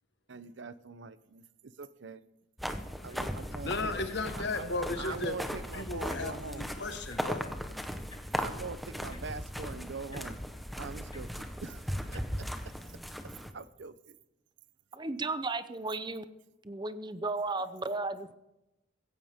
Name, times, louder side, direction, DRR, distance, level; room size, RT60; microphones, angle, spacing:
voice 1, 0.3-2.2 3.0-3.9 4.4-6.7 8.4-10.4 10.8-12.5 13.5-14.2, right 4 dB, 65° right, 15 dB, 0.7 m, -43 dB
sound 1, 2.6-13.5, equal, ahead, 1.0 m, -38 dB
sound 2, 3.1-13.0, left 1 dB, 25° left, 1.8 m, -53 dB
voice 2, 3.6-5.4 5.7-7.5, left 3 dB, 60° left, 8 dB, 1.5 m, -35 dB
voice 3, 14.9-16.2 16.6-18.3, right 3 dB, 25° right, 12 dB, 0.7 m, -34 dB
16.5 x 15.5 x 3.6 m, 0.93 s
head